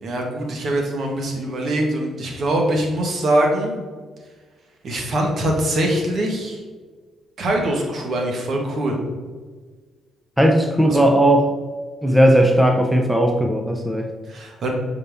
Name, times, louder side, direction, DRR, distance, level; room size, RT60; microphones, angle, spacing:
voice 1, 0.0-3.7 4.8-6.6 7.4-9.0 10.9-11.0 14.3-14.7, right 1 dB, 55° right, 1 dB, 1.3 m, -23 dB
voice 2, 10.4-11.5 12.0-14.1, right 1 dB, 5° right, 3 dB, 0.6 m, -16 dB
6.6 x 4.1 x 3.5 m, 1.5 s
cardioid pair, 90°, 0 cm